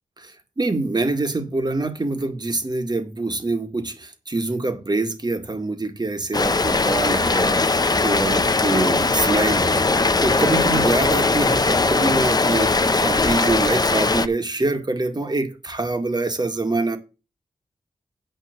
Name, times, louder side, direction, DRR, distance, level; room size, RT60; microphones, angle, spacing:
voice 1, 0.3-17.0, right 2 dB, 30° right, 1.9 m, -25 dB
Rain, 6.3-14.3, left 3 dB, 30° left, 0.8 m, -20 dB
9.4 x 5.5 x 6.7 m
cardioid pair, 55°, 13 cm